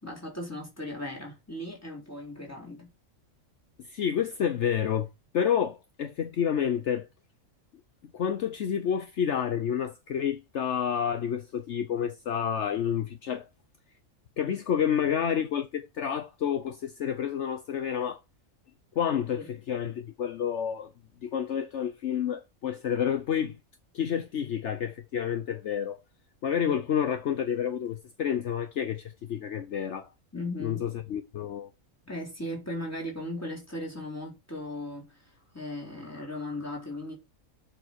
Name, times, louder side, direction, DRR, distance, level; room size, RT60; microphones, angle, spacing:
voice 1, 0.0-2.9 19.4-19.5 26.7-26.8 30.3-30.8 32.1-37.1, left 1 dB, 10° left, 3.7 m, -37 dB
voice 2, 3.8-5.1 5.3-7.1 8.1-13.5 14.4-18.2 18.9-20.9 21.2-23.6 23.9-26.0 26.4-30.1 30.6-31.7, left 8 dB, 65° left, 1.1 m, -29 dB
7.4 x 6.4 x 4.5 m
omnidirectional pair, 1.4 m